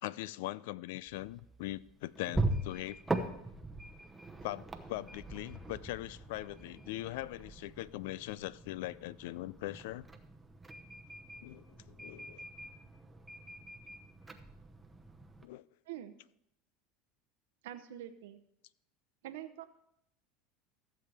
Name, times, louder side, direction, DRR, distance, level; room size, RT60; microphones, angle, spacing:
voice 1, 0.0-3.0 4.4-10.1 11.4-12.4 15.4-15.6, left 16 dB, 80° left, 0.3 m, -41 dB
sound 1, 1.1-15.5, right 2 dB, 10° right, 0.8 m, -41 dB
voice 2, 17.6-18.4 19.2-19.6, right 12 dB, 85° right, 0.7 m, -45 dB
14.5 x 7.5 x 3.4 m
supercardioid pair, 120°, 0 cm